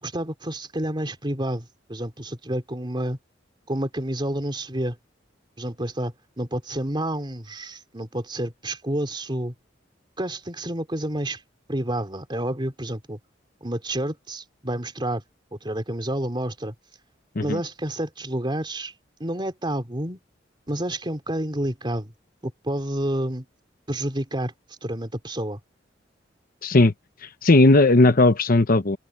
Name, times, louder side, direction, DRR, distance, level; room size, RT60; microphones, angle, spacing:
voice 1, 0.0-3.2 3.7-5.0 5.6-9.5 10.2-11.4 11.7-13.2 13.6-15.2 15.5-16.7 17.4-18.9 19.2-20.2 20.7-22.1 22.4-23.5 23.9-24.5 24.8-25.6, right 1 dB, 25° right, 3.3 m, -29 dB
voice 2, 26.6-26.9 27.2-29.0, left 2 dB, 50° left, 0.9 m, -17 dB
open air
head